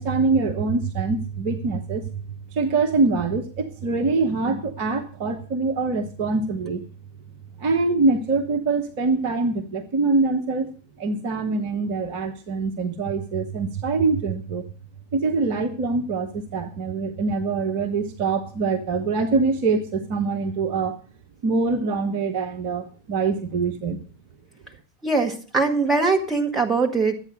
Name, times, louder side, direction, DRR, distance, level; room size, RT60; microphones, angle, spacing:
voice 1, 0.0-2.0 2.5-6.8 7.6-14.6 15.1-21.0 21.4-24.0, right 3 dB, 45° right, 5 dB, 1.1 m, -24 dB
voice 2, 25.0-27.2, right 3 dB, 15° right, 2 dB, 2.0 m, -22 dB
12.5 x 8.5 x 6.6 m, 0.39 s
figure-of-eight pair, 90°, 0 cm